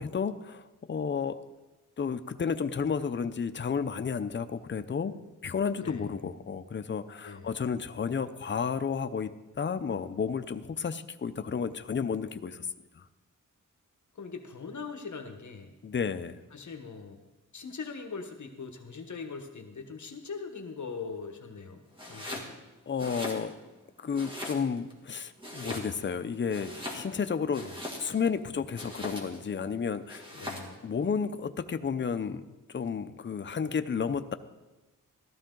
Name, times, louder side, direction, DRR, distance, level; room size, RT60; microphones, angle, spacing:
voice 1, 0.0-1.4 2.0-12.7 12.9-13.0 15.8-16.4 22.2-22.4 22.9-23.5 24.0-27.7 28.0-30.2 30.8-34.3, left 6 dB, 35° left, 10 dB, 0.6 m, -32 dB
voice 2, 5.8-6.1 7.2-7.5 14.1-15.7 16.5-17.2 17.5-21.8 22.1-22.6 27.5-27.8 30.3-30.8, left 5 dB, 65° left, 5 dB, 1.3 m, -41 dB
Domestic sounds home sounds, 21.9-22.5 22.9-23.8 24.1-24.9 25.4-26.2 26.5-28.3 28.7-29.5 30.1-30.8, left 1 dB, 15° right, 2.2 m, -40 dB
16.0 x 13.0 x 3.8 m, 1.1 s
wide cardioid pair, 140°, 32 cm